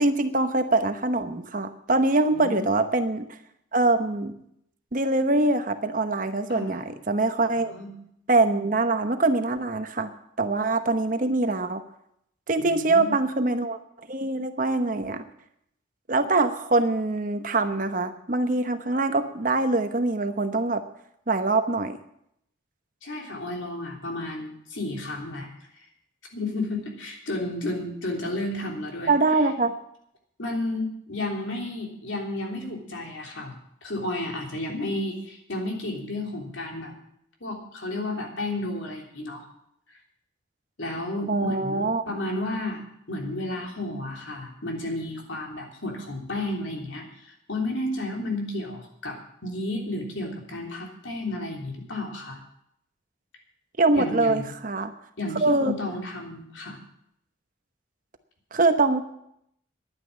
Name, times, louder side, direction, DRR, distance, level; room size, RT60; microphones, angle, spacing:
voice 1, 0.0-3.2 3.7-4.3 4.9-7.7 8.3-10.1 10.4-11.8 12.5-13.8 14.1-15.2 16.1-20.8 21.3-22.0 29.1-29.7 41.3-42.0 53.8-54.9 55.4-55.7 58.5-59.0, right 2 dB, 40° right, 8 dB, 0.9 m, -23 dB
voice 2, 2.3-2.7 6.5-6.9 7.5-7.9 12.6-13.1 23.0-25.5 25.7-25.8 26.3-29.1 30.4-33.5 33.8-36.9 37.4-39.4 40.8-52.4 53.9-54.5 55.2-56.8, left 1 dB, 75° left, 1 dB, 3.3 m, -32 dB
11.0 x 9.6 x 8.5 m, 0.75 s
head